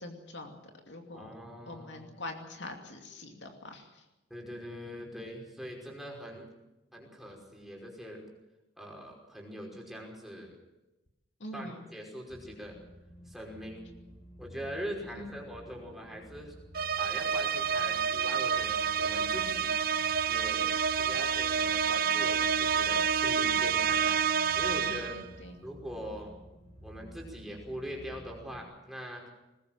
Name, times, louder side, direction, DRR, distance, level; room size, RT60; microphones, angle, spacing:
voice 1, 0.0-1.3 1.7-4.0 11.4-11.8 15.2-15.3 24.9-25.6, left 1 dB, 65° left, 3 dB, 2.7 m, -44 dB
voice 2, 1.1-2.1 4.3-6.5 6.9-8.2 8.8-10.6 11.5-12.8 13.3-13.8 14.4-16.5 17.0-19.7 20.2-24.2 24.5-25.2 25.6-26.3 26.8-29.3, equal, ahead, -1 dB, 5.4 m, -42 dB
sound 1, 12.3-28.6, equal, 35° left, 4.7 m, -51 dB
sound 2, 16.7-25.3, right 7 dB, 50° right, 0.8 m, -28 dB
21.0 x 20.5 x 7.5 m, 1.0 s
head